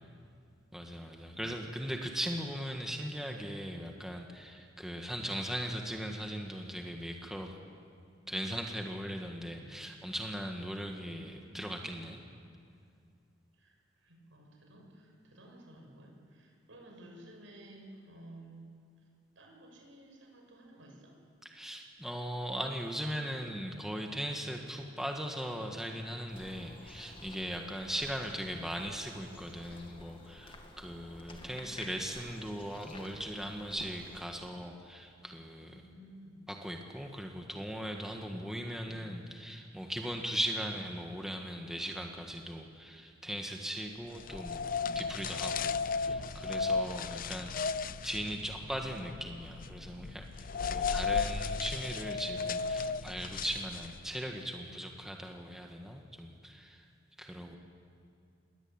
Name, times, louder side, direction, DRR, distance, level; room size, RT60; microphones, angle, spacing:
voice 1, 0.7-7.5 8.3-12.2 21.5-35.8 36.5-47.5 48.0-56.8 57.2-57.6, equal, ahead, 2 dB, 1.8 m, -39 dB
voice 2, 1.2-1.6 9.4-9.7 11.2-11.7 13.5-18.7 19.0-19.1 19.4-21.2 31.3-32.0 35.6-36.4 44.3-44.4 44.7-45.5 47.2-47.6 49.2-49.4 57.5-57.6, right 1 dB, 75° right, 1 dB, 7.0 m, -54 dB
sound 1, 26.3-34.2, left 1 dB, 25° left, 2.5 m, -52 dB
sound 2, 44.2-54.1, left 5 dB, 45° left, 0.6 m, -35 dB
28.5 x 22.0 x 9.0 m, 2.3 s
head